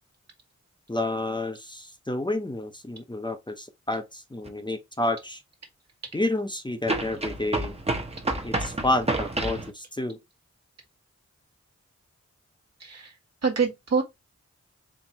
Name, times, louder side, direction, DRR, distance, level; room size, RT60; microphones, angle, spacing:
voice 1, 0.9-5.4 6.1-7.7 8.4-10.2, left 2 dB, 15° left, 0.7 m, -30 dB
sound 1, 4.4-4.5 6.9-9.7, right 2 dB, 20° right, 0.9 m, -29 dB
voice 2, 12.8-13.1 13.4-14.0, right 5 dB, 65° right, 1.5 m, -25 dB
4.4 x 3.1 x 2.9 m
wide cardioid pair, 70°, 29 cm